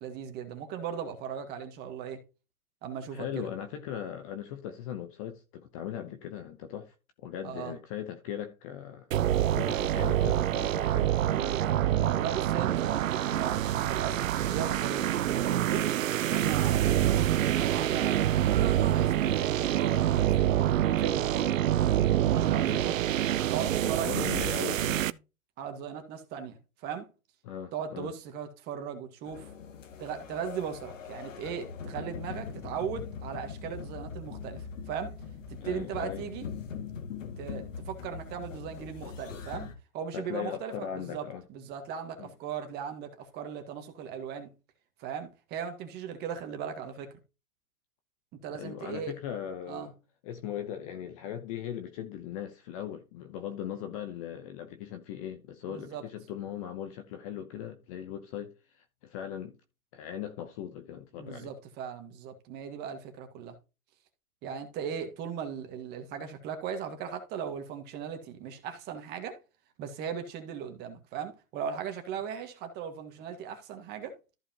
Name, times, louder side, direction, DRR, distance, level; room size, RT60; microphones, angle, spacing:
voice 1, 0.0-2.2 2.8-3.5 7.4-7.8 11.3-13.6 13.9-16.0 16.3-17.2 17.6-20.5 21.0-23.0 23.5-24.3 25.6-27.1 27.7-29.5 30.0-35.2 35.5-36.5 37.4-44.5 45.0-47.1 48.3-49.2 49.7-49.9 55.7-56.1 61.2-63.6 64.4-69.4 69.8-74.2, right 7 dB, 20° right, 1.8 m, -38 dB
voice 2, 3.1-6.9 7.2-11.4 22.4-23.0 23.8-25.0 27.4-28.1 35.6-36.3 40.1-41.4 42.2-42.3 48.5-49.9 50.2-59.6 59.9-61.5, left 9 dB, 25° left, 0.8 m, -39 dB
sound 1, 9.1-25.1, right 12 dB, 60° right, 0.6 m, -26 dB
sound 2, 29.2-39.7, left 6 dB, 60° left, 2.1 m, -41 dB
14.0 x 5.0 x 2.9 m
hypercardioid pair, 140°, 44 cm